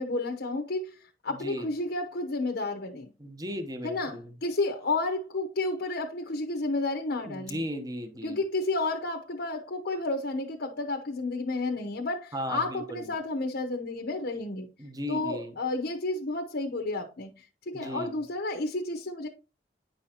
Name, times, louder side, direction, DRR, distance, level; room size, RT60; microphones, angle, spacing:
voice 1, 0.0-3.1 3.8-7.6 8.2-14.7 15.1-19.3, left 2 dB, 60° left, 0.9 m, -31 dB
voice 2, 1.3-1.7 3.2-4.3 7.2-8.4 12.3-13.1 14.8-15.5 17.7-18.2, equal, 20° right, 0.9 m, -36 dB
9.6 x 5.6 x 2.9 m
head